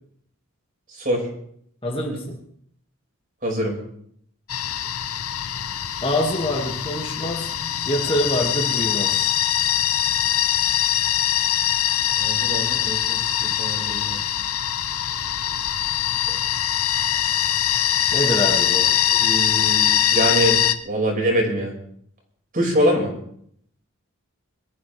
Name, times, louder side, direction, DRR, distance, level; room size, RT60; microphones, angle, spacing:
voice 1, 0.9-1.3 3.4-3.7 12.2-14.4 19.1-20.6 20.8-21.7 22.5-23.1, equal, 40° right, 0 dB, 5.7 m, -24 dB
voice 2, 1.8-2.4 6.0-7.5 7.9-9.3 18.1-18.9, equal, 25° left, 0 dB, 2.2 m, -25 dB
sound 1, 4.5-20.7, left 11 dB, 80° left, 0.8 m, -22 dB
23.0 x 14.5 x 3.5 m, 0.67 s
head